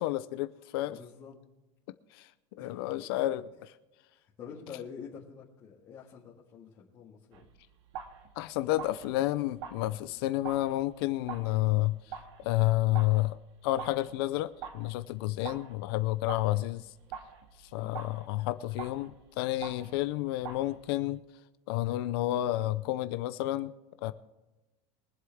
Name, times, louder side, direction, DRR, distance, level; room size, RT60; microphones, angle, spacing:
voice 1, 0.0-1.0 2.1-2.3 2.6-3.4 8.4-13.4 13.6-16.9 17.7-21.2 21.7-23.7 24.0-24.1, left 16 dB, 55° left, 13 dB, 0.6 m, -30 dB
voice 2, 0.9-1.4 2.6-2.8 3.1-3.3 4.1-7.5 17.7-18.0, left 7 dB, 25° left, -6 dB, 2.0 m, -47 dB
sound 1, 7.3-21.2, right 7 dB, 75° right, 1.9 m, -46 dB
23.5 x 7.9 x 3.5 m, 1.1 s
supercardioid pair, 175°, 15 cm